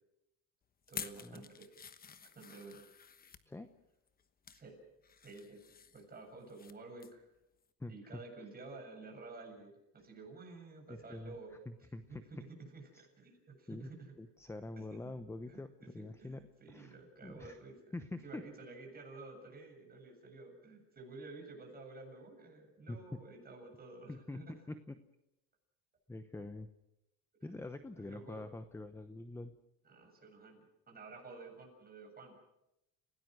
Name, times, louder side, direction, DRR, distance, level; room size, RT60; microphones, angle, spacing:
sound 1, 0.8-3.5 4.1-4.6 5.0-6.7 7.0-7.2 7.6-7.7, left 6 dB, 25° left, 1.1 m, -50 dB
voice 1, 0.9-1.7 2.2-2.9 4.5-4.8 5.2-5.6 5.9-7.3 7.9-11.6 12.1-14.1 14.8-15.2 15.5-17.8 18.2-24.6 27.4-27.6 28.0-28.5 29.8-32.4, right 3 dB, 25° right, 2 dB, 7.6 m, -52 dB
voice 2, 7.8-8.2 10.9-11.3 11.7-12.2 13.7-13.9 14.2-16.9 17.2-17.6 17.9-18.4 22.9-23.2 24.1-25.0 26.1-26.7 27.4-29.5, left 2 dB, 5° left, 10 dB, 0.8 m, -45 dB
30.0 x 18.0 x 6.3 m, 0.87 s
cardioid pair, 135°, 37 cm